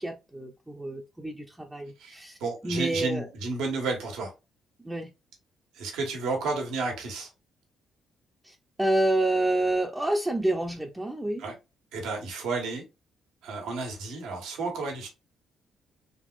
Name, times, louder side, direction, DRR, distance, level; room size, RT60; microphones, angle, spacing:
voice 1, 0.0-2.4 2.6-3.3 4.8-5.1 8.4-11.4, right 1 dB, 10° right, 0.5 m, -28 dB
voice 2, 2.4-4.3 5.7-7.3 11.4-11.5 11.9-12.8 13.4-15.1, right 3 dB, 90° right, 1.3 m, -32 dB
3.6 x 2.9 x 2.5 m
cardioid pair, 90°, 0 cm